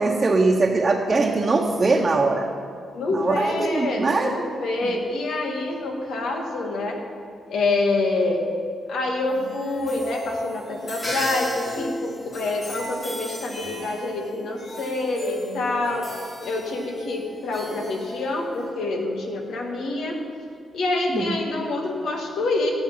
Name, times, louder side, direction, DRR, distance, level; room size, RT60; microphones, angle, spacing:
voice 1, 0.0-2.5 3.1-4.3 21.1-21.3, right 3 dB, 35° right, -1 dB, 1.1 m, -21 dB
voice 2, 2.9-7.0 7.5-8.5 8.9-16.1 16.4-20.2 20.7-22.7, left 2 dB, 80° left, 1 dB, 2.0 m, -26 dB
sound 1, 9.2-18.7, left 1 dB, 35° left, 4.2 m, -35 dB
17.0 x 8.1 x 5.8 m, 2.3 s
cardioid pair, 90°, 0 cm